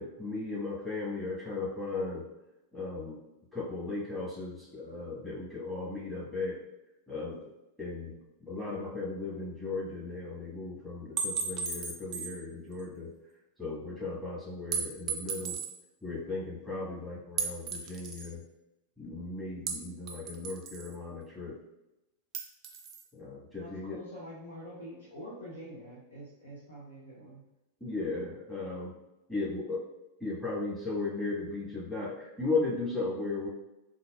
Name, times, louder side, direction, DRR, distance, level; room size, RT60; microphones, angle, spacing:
voice 1, 0.0-2.2 2.7-3.2 3.5-6.6 7.1-7.5 7.8-13.1 13.6-15.6 16.0-18.4 19.0-21.6 23.1-24.0 27.8-28.9 29.3-29.8 30.2-33.5, left 3 dB, 5° left, -7 dB, 1.5 m, -36 dB
sound 1, 11.2-12.4 12.8-12.9 14.7-15.7 17.4-18.3 19.7-20.9 22.3-23.0, right 5 dB, 35° right, 0.4 m, -35 dB
voice 2, 23.6-27.4, equal, 60° left, -6 dB, 0.7 m, -46 dB
3.9 x 2.4 x 2.3 m, 0.95 s
figure-of-eight pair, 90°, 0 cm